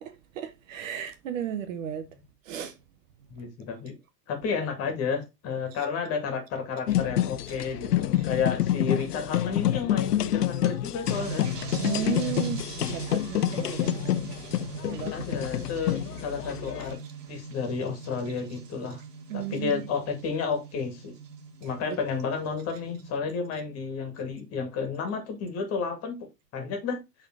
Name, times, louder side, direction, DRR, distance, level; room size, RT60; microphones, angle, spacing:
voice 1, 0.0-2.1 2.5-2.7 11.8-14.0 14.5-14.6 14.9-15.1 19.3-19.8, right 9 dB, 50° right, 1.2 m, -34 dB
voice 2, 3.3-3.9 4.3-11.5 15.1-17.0 17.3-19.0 19.3-21.1 21.6-27.0, left 5 dB, 30° left, 2.1 m, -31 dB
sound 1, 6.9-17.0, left 13 dB, 70° left, 0.6 m, -28 dB
sound 2, 11.0-23.2, right 6 dB, 70° right, 1.3 m, -41 dB
7.1 x 3.9 x 3.7 m
figure-of-eight pair, 100°, 50 cm